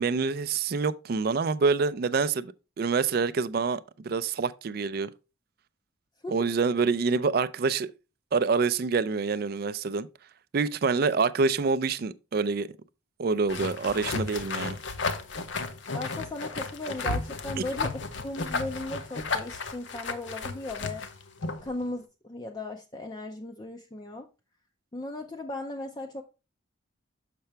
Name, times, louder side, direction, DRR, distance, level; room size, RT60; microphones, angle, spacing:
voice 1, 0.0-2.5 2.8-5.1 6.3-7.9 8.3-10.1 10.5-12.7 13.2-14.8 17.6-17.7, right 4 dB, 50° right, 0.4 m, -26 dB
sound 1, 13.5-21.7, left 4 dB, 60° left, 0.7 m, -33 dB
voice 2, 15.9-21.2 21.6-24.3 24.9-26.2, left 2 dB, 20° left, 0.4 m, -37 dB
6.7 x 5.7 x 3.3 m
head